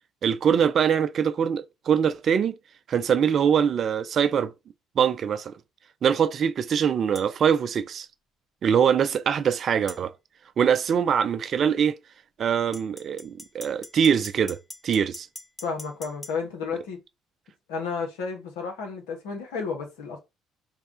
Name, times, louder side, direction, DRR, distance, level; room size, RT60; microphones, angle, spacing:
voice 1, 0.2-2.6 2.9-4.5 5.0-5.5 6.0-8.1 8.6-10.1 10.6-12.0 12.4-14.6 14.8-15.3, right 7 dB, 50° right, 0.4 m, -23 dB
sound 1, 7.1-7.3 9.9-10.0 12.7-16.4, left 1 dB, 10° left, 0.4 m, -43 dB
voice 2, 15.6-17.0 17.7-20.2, left 5 dB, 80° left, 1.1 m, -32 dB
3.2 x 2.3 x 3.7 m
hypercardioid pair, 60°, 0 cm